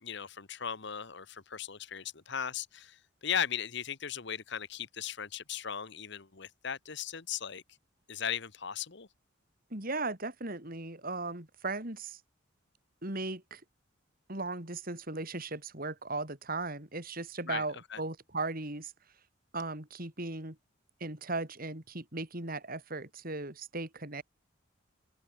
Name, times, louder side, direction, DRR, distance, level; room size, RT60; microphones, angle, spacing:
voice 1, 0.0-7.6 8.1-9.1 17.5-17.6 17.9-18.0, left 8 dB, 60° left, 1.3 m, -37 dB
voice 2, 9.7-12.2 13.0-13.6 14.3-18.9 19.5-20.6 21.0-24.2, right 3 dB, 45° right, 4.4 m, -37 dB
open air
head